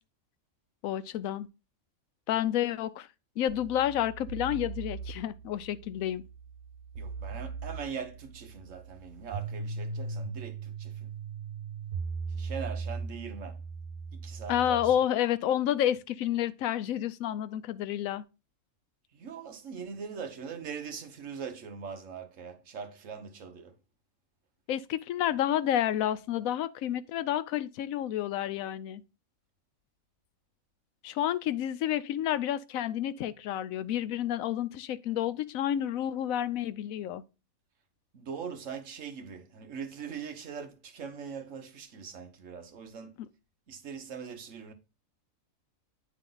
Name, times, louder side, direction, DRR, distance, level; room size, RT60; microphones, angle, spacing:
voice 1, 0.8-1.5 2.3-3.1 3.4-6.2 14.5-18.2 24.7-29.0 31.0-37.2, left 11 dB, 80° left, 1.0 m, -30 dB
sound 1, 3.5-14.9, right 4 dB, 90° right, 1.4 m, -39 dB
voice 2, 7.0-11.1 12.3-13.6 14.1-14.9 19.1-23.7 38.1-43.1 43.7-44.7, right 6 dB, 65° right, 1.4 m, -41 dB
9.1 x 3.7 x 3.8 m
omnidirectional pair, 1.4 m